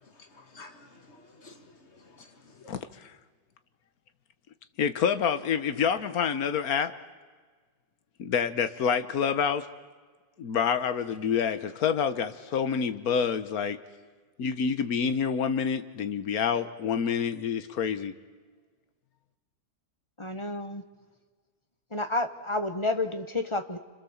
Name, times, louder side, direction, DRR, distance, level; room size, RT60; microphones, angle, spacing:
voice 1, 0.0-2.7, left 3 dB, 40° left, 2.1 m, -53 dB
voice 2, 2.7-3.1 4.8-6.9 8.2-9.7 10.4-13.8 14.4-18.1, left 7 dB, 60° left, 1.6 m, -27 dB
voice 3, 20.2-20.8 21.9-23.8, left 2 dB, 20° left, 1.1 m, -30 dB
30.0 x 26.0 x 7.3 m
omnidirectional pair, 1.8 m